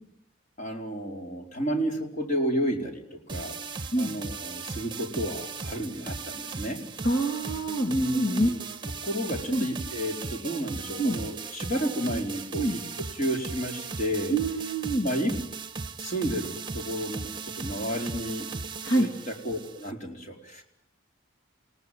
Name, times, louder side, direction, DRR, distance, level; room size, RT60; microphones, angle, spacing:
voice 1, 0.6-3.6 4.0-6.8 7.8-8.6 9.0-14.4 15.0-15.3 16.0-18.5 19.0-20.6, equal, 40° left, 2 dB, 4.6 m, -31 dB
sound 1, 3.3-19.9, right 4 dB, 20° right, 1.2 m, -37 dB
voice 2, 7.0-8.5 9.5-9.7 11.0-11.2 12.6-12.8 14.3-15.1 18.8-19.1, right 1 dB, 60° left, 3 dB, 2.7 m, -26 dB
29.0 x 18.5 x 9.5 m, 0.76 s
head